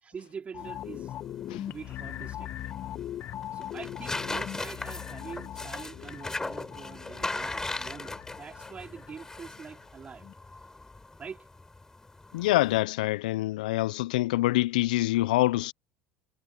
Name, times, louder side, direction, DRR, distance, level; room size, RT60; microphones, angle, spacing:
voice 1, 0.0-1.1 1.7-2.7 3.5-10.3 11.2-11.5, right 6 dB, 30° right, 4.4 m, -44 dB
sound 1, 0.5-9.8 10.2-10.3, left 12 dB, 50° left, 1.0 m, -41 dB
sound 2, 0.6-12.8, left 2 dB, 15° left, 4.6 m, -39 dB
voice 2, 12.3-15.7, left 17 dB, 85° left, 0.4 m, -25 dB
supercardioid pair, 90°, 4 cm